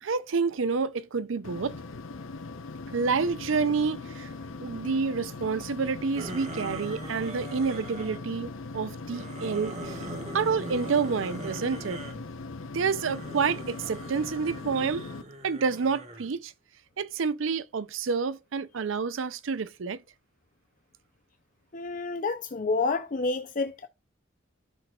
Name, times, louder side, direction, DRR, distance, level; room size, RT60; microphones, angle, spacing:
voice 1, 0.0-1.8 2.9-4.3 4.6-10.0 10.3-12.0 12.7-15.1 15.4-16.5 17.0-20.0, right 5 dB, 75° right, 0.5 m, -28 dB
sound 1, 1.4-15.2, left 3 dB, 85° left, 0.8 m, -40 dB
sound 2, 6.2-8.2 9.0-12.2 12.9-16.3, right 2 dB, 35° right, 1.4 m, -41 dB
voice 2, 21.7-23.9, left 3 dB, 40° left, 0.5 m, -29 dB
13.0 x 5.9 x 2.4 m
head